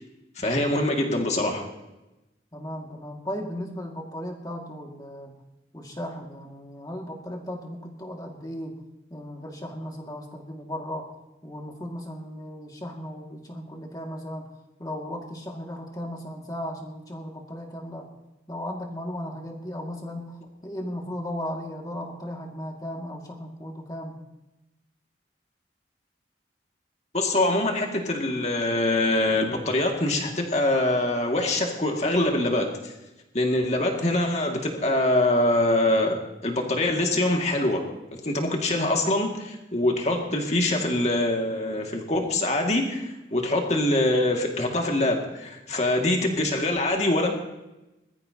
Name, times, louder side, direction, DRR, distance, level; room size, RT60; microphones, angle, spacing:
voice 1, 0.4-1.6 27.1-32.9 33.3-37.8 38.1-47.4, left 1 dB, 40° left, 1 dB, 2.2 m, -24 dB
voice 2, 2.5-5.3 5.7-8.8 9.1-11.1 11.4-14.5 14.8-18.1 18.5-24.2, equal, 20° left, 1 dB, 2.1 m, -36 dB
21.5 x 13.5 x 2.9 m, 0.97 s
head